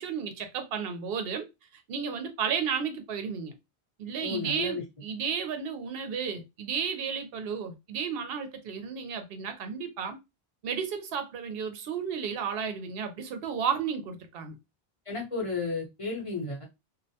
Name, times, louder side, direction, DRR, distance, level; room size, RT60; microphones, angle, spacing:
voice 1, 0.0-1.5 1.7-3.5 4.0-10.2 10.6-14.6, right 6 dB, 70° right, 0.8 m, -33 dB
voice 2, 4.2-4.8 15.1-16.6, left 3 dB, 35° left, 0.9 m, -33 dB
2.4 x 2.1 x 2.7 m
omnidirectional pair, 1.0 m